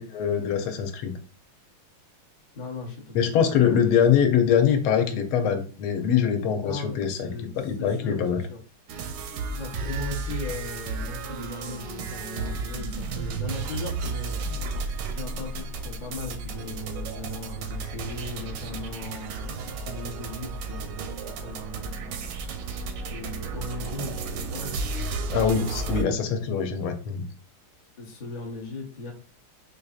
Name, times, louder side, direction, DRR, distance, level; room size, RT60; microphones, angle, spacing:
voice 1, 0.1-1.2 3.1-8.4 25.3-27.2, left 8 dB, 85° left, 6 dB, 1.5 m, -23 dB
voice 2, 2.5-4.0 6.6-7.5 7.8-8.6 9.5-14.8 15.0-22.4 23.1-24.9 25.5-26.1 28.0-29.1, left 3 dB, 60° left, -2 dB, 0.4 m, -38 dB
sound 1, 8.9-26.0, right 4 dB, 75° right, 1.1 m, -33 dB
4.6 x 2.6 x 2.4 m, 0.38 s
omnidirectional pair, 2.4 m